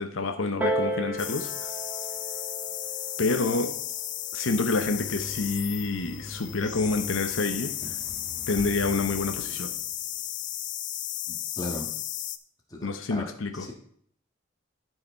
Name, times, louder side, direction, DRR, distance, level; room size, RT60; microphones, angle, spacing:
voice 1, 0.0-1.7 3.2-3.7 4.3-7.7 8.5-9.7 12.8-13.7, left 3 dB, 75° left, 7 dB, 0.8 m, -28 dB
Piano, 0.6-5.8 6.6-6.7, right 1 dB, 10° right, 1.2 m, -35 dB
sound 1, 1.2-12.4, left 12 dB, 40° left, 0.4 m, -34 dB
sound 2, 4.8-10.2, left 1 dB, 50° right, 1.8 m, -43 dB
voice 2, 11.3-11.9 12.7-13.3 13.5-13.7, left 2 dB, 20° left, 0 dB, 1.5 m, -37 dB
12.0 x 4.8 x 4.5 m, 0.63 s
head